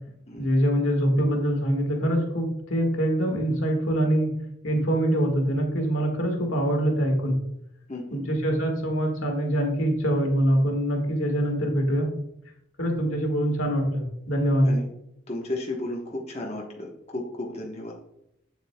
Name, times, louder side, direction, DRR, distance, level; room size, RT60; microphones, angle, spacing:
voice 1, 0.4-4.3 4.6-7.4 8.1-12.1 12.8-14.7, equal, 80° left, 2 dB, 1.7 m, -24 dB
voice 2, 7.9-8.2 14.7-14.9 15.3-17.9, left 1 dB, 30° left, -2 dB, 1.1 m, -33 dB
7.8 x 7.5 x 2.3 m, 0.79 s
head